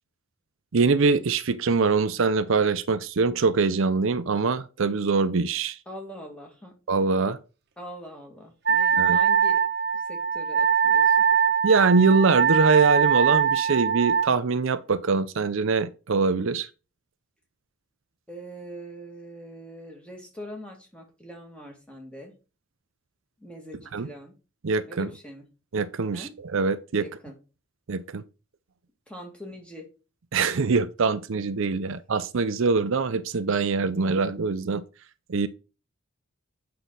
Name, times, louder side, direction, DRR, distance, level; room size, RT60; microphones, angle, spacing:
voice 1, 0.7-5.8 6.9-7.4 9.0-9.2 11.6-16.7 23.9-24.1 24.6-25.1 25.7-27.0 27.9-28.2 30.3-34.8 35.3-35.5, right 4 dB, 65° right, 0.5 m, -23 dB
voice 2, 5.9-6.7 7.8-9.6 9.9-11.2 18.3-22.3 23.4-24.3 24.9-25.5 26.1-26.3 27.0-27.4 29.1-29.9, equal, 5° left, 2.1 m, -42 dB
Wind instrument woodwind instrument, 8.7-14.3, right 7 dB, 50° right, 1.0 m, -22 dB
8.1 x 5.7 x 3.9 m
head